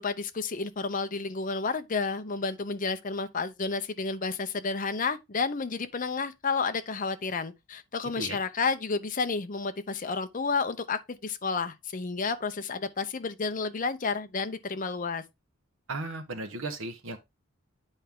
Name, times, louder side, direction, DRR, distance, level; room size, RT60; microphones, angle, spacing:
voice 1, 0.0-15.2, left 4 dB, 40° left, 0.7 m, -31 dB
voice 2, 15.9-17.2, right 2 dB, 75° right, 1.3 m, -35 dB
9.0 x 4.4 x 3.6 m
head